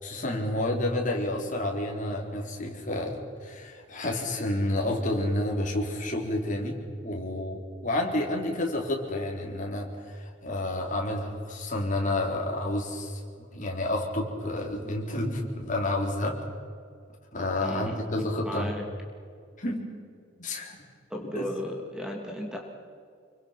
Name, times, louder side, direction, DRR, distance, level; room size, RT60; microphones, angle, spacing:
voice 1, 0.0-16.4 17.3-18.7 19.6-19.9 20.4-20.8 21.3-21.5, left 1 dB, 40° left, 0 dB, 4.1 m, -30 dB
voice 2, 17.6-18.8 21.1-22.6, left 1 dB, 5° right, 1 dB, 2.8 m, -36 dB
26.5 x 24.0 x 6.0 m, 2.2 s
head